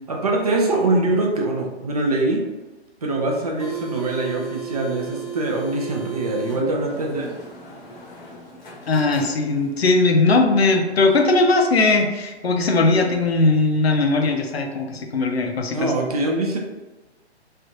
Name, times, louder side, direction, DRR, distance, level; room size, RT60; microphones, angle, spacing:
voice 1, 0.1-2.4 3.0-7.3 15.7-16.6, right 2 dB, 35° right, 0 dB, 0.5 m, -23 dB
sound 1, 3.3-9.8, right 6 dB, 45° left, 0.8 m, -36 dB
voice 2, 8.9-15.9, left 3 dB, 65° left, 3 dB, 0.6 m, -19 dB
3.3 x 2.4 x 2.7 m, 1.1 s
figure-of-eight pair, 135°, 33 cm